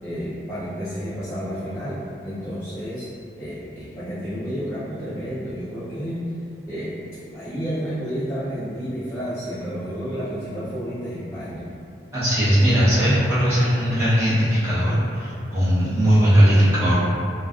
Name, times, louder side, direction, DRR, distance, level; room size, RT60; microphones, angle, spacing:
voice 1, 0.0-3.1 3.4-6.2 6.7-7.0 7.3-11.6, equal, 15° left, -15 dB, 0.4 m, -31 dB
voice 2, 12.1-16.9, equal, 15° right, -13 dB, 0.8 m, -18 dB
2.4 x 2.2 x 2.3 m, 2.5 s
head